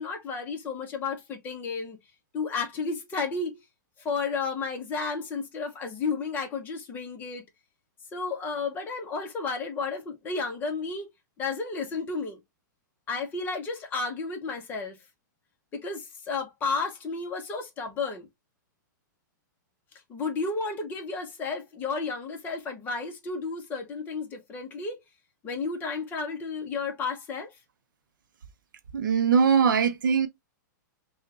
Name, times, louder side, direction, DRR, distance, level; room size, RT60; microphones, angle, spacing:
voice 1, 0.0-2.0 2.3-3.6 4.0-7.4 8.1-11.1 11.4-12.4 13.1-15.0 15.7-18.3 20.1-25.0 25.4-27.5, left 4 dB, 20° left, 1.1 m, -32 dB
voice 2, 28.9-30.3, right 6 dB, 85° right, 0.8 m, -21 dB
5.4 x 2.4 x 2.9 m
hypercardioid pair, 160°, 11 cm